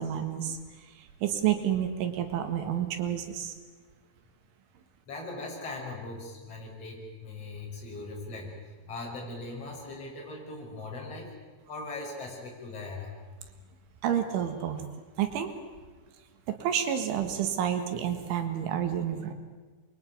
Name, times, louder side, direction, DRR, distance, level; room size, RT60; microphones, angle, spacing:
voice 1, 0.0-3.6 14.0-14.8 15.2-15.5 16.5-19.3, right 9 dB, 75° right, 7 dB, 4.1 m, -30 dB
voice 2, 5.1-11.3 11.7-13.2, left 2 dB, 30° left, -1 dB, 6.5 m, -40 dB
27.0 x 22.5 x 9.5 m, 1.4 s
omnidirectional pair, 5.6 m